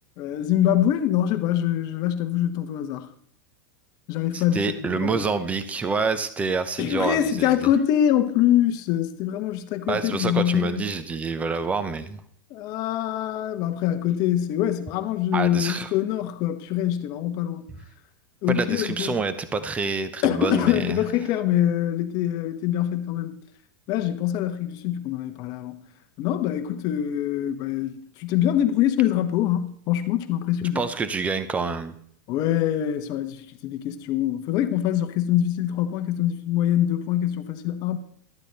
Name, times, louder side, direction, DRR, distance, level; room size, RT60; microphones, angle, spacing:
voice 1, 0.2-3.1 4.1-5.2 6.8-10.8 12.5-17.6 18.4-19.2 20.2-23.4 23.9-25.8 26.2-30.9 32.3-38.0, left 11 dB, 40° left, 0.9 m, -24 dB
voice 2, 4.3-7.5 9.9-12.2 15.3-15.9 18.5-21.0 30.7-31.9, right 4 dB, 15° right, 0.6 m, -27 dB
11.5 x 8.4 x 4.1 m
supercardioid pair, 150°, 11 cm